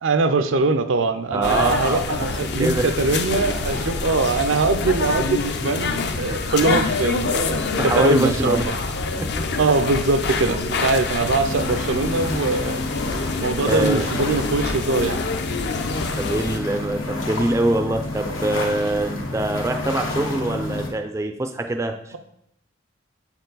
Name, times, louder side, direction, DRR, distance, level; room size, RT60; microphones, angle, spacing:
voice 1, 0.0-8.7 9.6-12.8 13.4-15.3, right 3 dB, 80° right, 9 dB, 0.5 m, -22 dB
voice 2, 1.3-2.0 2.4-2.9 6.3-6.4 7.6-8.7 9.2-9.4 13.1-14.1 16.2-22.2, right 1 dB, 15° right, 6 dB, 0.3 m, -24 dB
sound 1, 1.4-16.6, left 4 dB, 55° left, 0.5 m, -26 dB
sound 2, 11.4-20.9, left 2 dB, 90° left, 1.2 m, -30 dB
7.1 x 4.4 x 3.9 m, 0.75 s
head